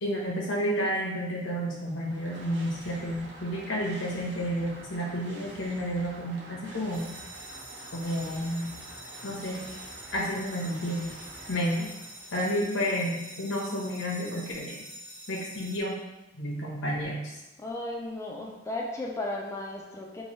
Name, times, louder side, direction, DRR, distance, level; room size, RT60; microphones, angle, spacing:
voice 1, 0.0-7.1 7.9-8.7 9.2-9.7 10.1-11.1 11.5-11.9 12.3-14.8 15.3-16.0 16.3-17.4, equal, 85° left, -3 dB, 0.9 m, -31 dB
sound 1, 1.8-12.6, right 2 dB, 65° right, 0.8 m, -47 dB
sound 2, 6.9-15.8, right 1 dB, 10° right, 0.7 m, -46 dB
voice 2, 17.6-20.2, left 2 dB, 15° left, -1 dB, 0.3 m, -35 dB
3.1 x 2.2 x 4.2 m, 0.99 s
head